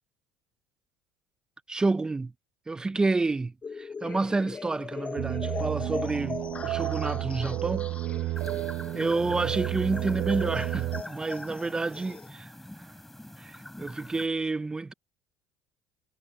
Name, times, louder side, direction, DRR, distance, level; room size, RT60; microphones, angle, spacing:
voice 1, 1.7-2.3 2.7-7.9 8.2-8.3 8.9-12.5 12.8-12.9 13.4-14.9, right 3 dB, 15° right, 0.7 m, -29 dB
sound 1, 3.6-12.3, left 5 dB, 30° left, 1.1 m, -40 dB
sound 2, 5.2-11.0, right 15 dB, 65° right, 1.0 m, -31 dB
sound 3, 8.3-14.3, left 1 dB, 5° left, 4.8 m, -44 dB
supercardioid pair, 95°, 5 cm